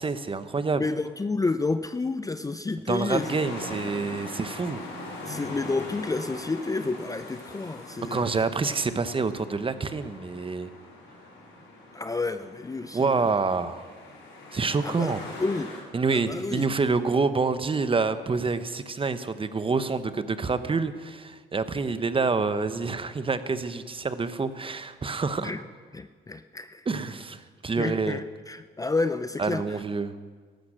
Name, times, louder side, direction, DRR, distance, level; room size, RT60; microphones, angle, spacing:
voice 1, 0.0-0.8 2.9-4.8 8.1-10.7 12.9-13.8 14.5-15.2 15.9-25.5 26.9-28.2 29.4-30.1, right 4 dB, 25° right, 12 dB, 0.9 m, -27 dB
voice 2, 0.8-3.4 5.3-8.2 11.9-13.3 14.8-15.1 15.4-15.7 16.1-16.6 25.4-25.6 25.9-26.8 27.8-29.8, left 3 dB, 15° left, 11 dB, 0.5 m, -30 dB
sound 1, 3.1-15.8, left 2 dB, 75° left, 5.0 m, -41 dB
14.5 x 11.5 x 6.3 m, 1.5 s
cardioid pair, 90°, 20 cm